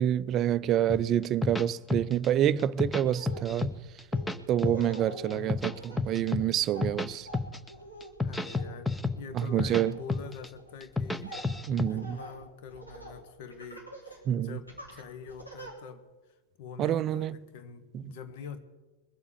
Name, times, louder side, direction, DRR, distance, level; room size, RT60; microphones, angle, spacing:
voice 1, 0.0-3.7 4.5-7.3 9.3-10.0 11.7-12.2 14.3-14.6 16.8-17.4 17.9-18.0, right 11 dB, 30° right, 0.4 m, -27 dB
sound 1, 0.9-2.3 2.6-3.7 4.0-5.0 5.3-7.1 7.3-7.7 8.0-9.8 10.1-10.5 10.8-11.9, left 3 dB, 5° left, 0.7 m, -30 dB
Laughter, 2.4-2.6 3.0-13.2 13.5-14.2 14.7-15.7, right 1 dB, 90° left, 3.3 m, -46 dB
voice 2, 8.2-11.5 11.9-18.6, left 6 dB, 50° left, 1.3 m, -45 dB
21.0 x 7.1 x 8.2 m
figure-of-eight pair, 90°, 0 cm